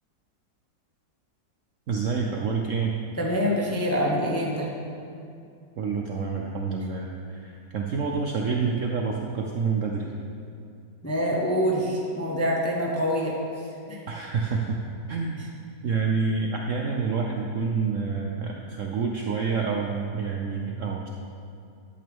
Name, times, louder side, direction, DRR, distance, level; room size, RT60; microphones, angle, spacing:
voice 1, 1.9-2.9 5.8-10.1 14.1-14.8 15.1-15.5 15.8-21.1, right 5 dB, 65° right, 0 dB, 0.8 m, -28 dB
voice 2, 3.2-4.7 11.0-13.4 13.9-14.0, equal, 15° left, -2 dB, 0.5 m, -25 dB
11.0 x 8.4 x 3.6 m, 2.4 s
omnidirectional pair, 1.9 m